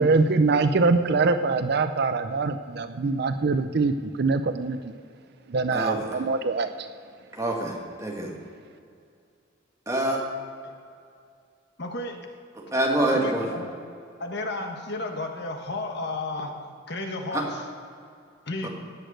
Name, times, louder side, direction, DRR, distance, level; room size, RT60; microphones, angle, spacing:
voice 1, 0.0-4.9 5.5-6.7, right 3 dB, 55° right, 10 dB, 0.5 m, -23 dB
voice 2, 7.3-8.3 9.9-10.2 12.7-13.5 17.3-17.4 18.6-18.7, right 1 dB, 15° right, -1 dB, 1.9 m, -25 dB
voice 3, 11.8-12.2 13.1-13.6 14.2-16.5 16.9-17.6 18.5-18.7, left 2 dB, 55° left, 3 dB, 1.4 m, -32 dB
18.0 x 6.5 x 6.4 m, 2.4 s
head